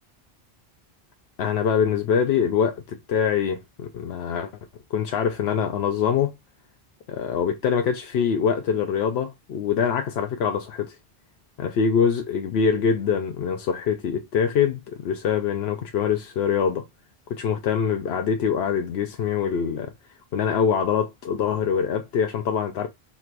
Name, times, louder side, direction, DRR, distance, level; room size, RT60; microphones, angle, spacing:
voice 1, 1.4-4.5 4.9-6.3 7.1-10.9 11.6-16.8 17.3-19.9 20.3-22.9, left 7 dB, 90° left, 0.8 m, -24 dB
4.1 x 2.5 x 4.5 m
omnidirectional pair, 1.0 m